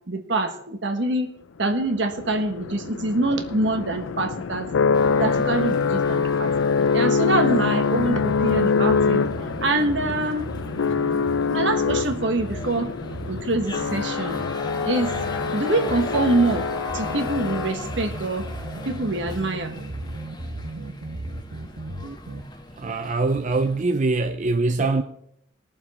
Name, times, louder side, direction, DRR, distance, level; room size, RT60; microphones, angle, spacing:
voice 1, 0.1-1.3 1.6-4.7 5.2-6.5 6.9-9.2 9.6-10.5 11.5-12.9 13.3-14.5 14.8-15.1 15.5-16.7 16.9-18.5 18.8-19.7, right 2 dB, 65° right, 1.4 m, -25 dB
sound 1, 1.9-18.1, left 5 dB, 80° left, 0.4 m, -25 dB
sound 2, 4.9-23.8, left 2 dB, 20° left, 1.2 m, -39 dB
sound 3, 8.0-22.4, right 1 dB, 85° right, 1.1 m, -35 dB
voice 2, 22.8-25.0, right 3 dB, 40° right, 0.5 m, -23 dB
19.5 x 7.1 x 4.2 m
head